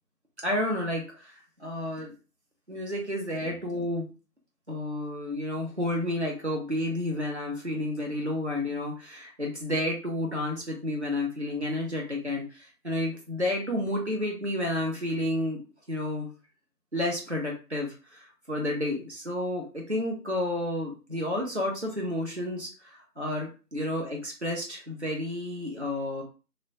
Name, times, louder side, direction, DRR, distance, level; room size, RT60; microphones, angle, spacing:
voice 1, 0.4-2.1 2.7-4.1 4.7-15.6 15.9-16.3 16.9-26.2, left 1 dB, 45° right, 0 dB, 0.7 m, -31 dB
2.9 x 2.1 x 2.6 m, 0.34 s
figure-of-eight pair, 175°, 48 cm